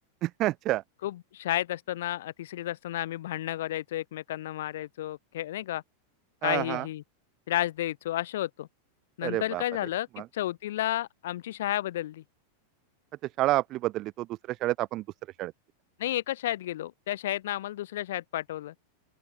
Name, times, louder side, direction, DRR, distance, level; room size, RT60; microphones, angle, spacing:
voice 1, 0.2-0.8 6.4-6.9 9.2-9.6 10.2-10.3 13.4-15.0 15.4-15.5, right 17 dB, 35° right, 2.5 m, -29 dB
voice 2, 1.0-5.8 6.4-7.0 7.5-8.7 9.2-10.1 10.3-12.2 16.0-18.7, left 14 dB, 55° left, 7.1 m, -32 dB
open air
figure-of-eight pair, 90°, 0 cm